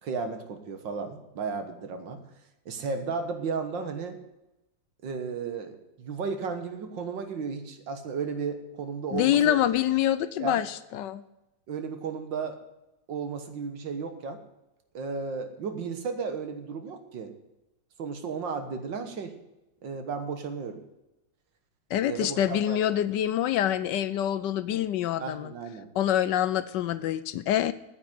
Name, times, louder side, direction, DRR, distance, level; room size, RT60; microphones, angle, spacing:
voice 1, 0.0-2.2 2.7-4.2 5.0-9.6 10.4-10.6 11.7-12.6 13.1-14.4 14.9-17.3 18.0-19.3 19.8-20.8 22.1-22.8 25.2-25.9, right 5 dB, 75° right, 7 dB, 2.0 m, -34 dB
voice 2, 9.1-11.2 21.9-25.5 26.0-27.7, left 11 dB, 75° left, 14 dB, 1.2 m, -26 dB
9.5 x 8.3 x 9.0 m, 0.95 s
omnidirectional pair, 2.0 m